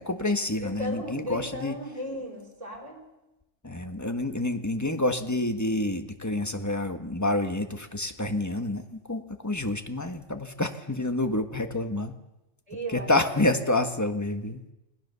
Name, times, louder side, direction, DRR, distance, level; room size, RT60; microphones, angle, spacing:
voice 1, 0.0-1.7 3.6-12.1 12.9-14.6, left 2 dB, 15° left, 7 dB, 1.5 m, -28 dB
voice 2, 0.6-3.1 12.7-13.7, equal, 30° right, 0 dB, 5.4 m, -36 dB
28.5 x 19.5 x 7.0 m, 0.97 s
omnidirectional pair, 1.3 m